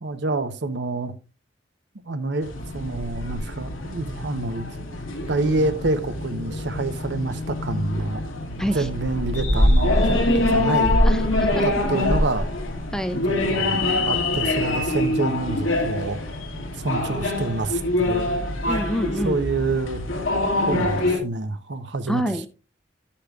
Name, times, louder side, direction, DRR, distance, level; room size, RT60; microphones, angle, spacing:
voice 1, 0.0-1.1 2.0-4.7 5.3-8.2 8.7-11.0 11.6-12.5 13.3-16.2 16.8-18.3 19.2-20.0 20.7-22.5, right 3 dB, 60° right, 0.8 m, -27 dB
sound 1, 2.4-21.2, left 1 dB, 90° left, 2.0 m, -24 dB
voice 2, 11.1-11.6 12.9-13.2 18.7-19.4 22.1-22.5, equal, 5° left, 0.5 m, -26 dB
11.5 x 8.5 x 2.3 m
head